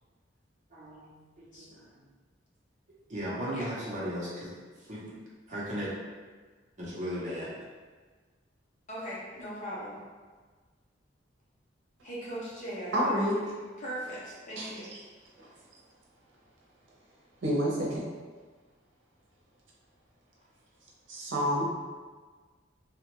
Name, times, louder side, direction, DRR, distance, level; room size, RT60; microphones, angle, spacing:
voice 1, 0.7-2.1 3.1-4.5 4.8-5.1 5.5-5.9 6.8-7.5, equal, 40° right, -7 dB, 0.9 m, -36 dB
voice 2, 8.9-10.0 12.0-14.2 14.5-14.9, right 1 dB, 40° left, -7 dB, 0.9 m, -39 dB
voice 3, 12.9-13.4 14.6-14.7 15.4-15.5 17.4-18.0 21.1-21.6, equal, 85° right, -5 dB, 0.7 m, -28 dB
2.9 x 2.4 x 3.1 m, 1.4 s
head